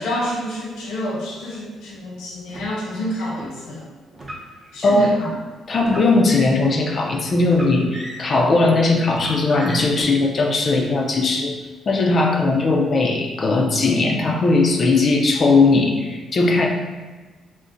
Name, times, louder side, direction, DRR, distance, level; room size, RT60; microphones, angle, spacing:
voice 1, 0.0-3.8 4.7-5.3, left 1 dB, 85° left, -3 dB, 0.8 m, -28 dB
Car, 2.5-3.5 4.1-5.2 5.8-6.8 7.4-8.5 9.1-10.0, right 1 dB, 25° right, 0.6 m, -37 dB
voice 2, 4.8-5.3 5.7-11.5 11.9-16.7, left 3 dB, 40° left, 0 dB, 0.3 m, -18 dB
2.5 x 2.1 x 3.7 m, 1.3 s
cardioid pair, 105°, 0 cm